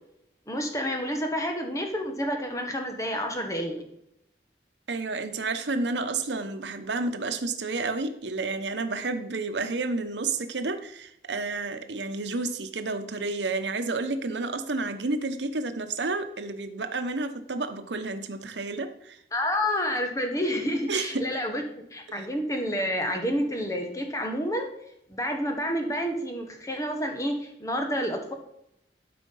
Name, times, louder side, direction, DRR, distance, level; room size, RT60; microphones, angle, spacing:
voice 1, 0.5-3.8 19.3-24.7 25.1-28.3, equal, 20° left, 4 dB, 1.4 m, -29 dB
voice 2, 4.9-19.2 20.9-21.3 22.1-22.3, right 3 dB, 90° right, 8 dB, 0.9 m, -30 dB
12.0 x 5.0 x 5.5 m, 0.77 s
head